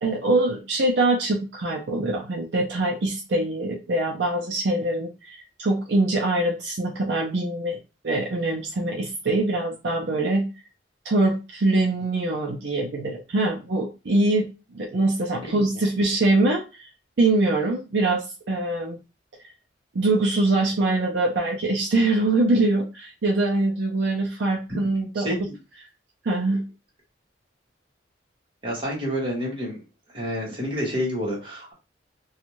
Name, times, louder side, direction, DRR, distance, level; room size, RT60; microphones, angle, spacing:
voice 1, 0.0-7.8 8.0-10.4 11.0-14.5 14.7-16.9 17.2-19.0 19.9-25.4 26.2-26.6, right 2 dB, 65° right, 0 dB, 0.5 m, -23 dB
voice 2, 25.1-25.5 28.6-29.8 30.1-31.7, equal, 30° right, -3 dB, 1.2 m, -29 dB
2.5 x 2.3 x 3.0 m, 0.30 s
head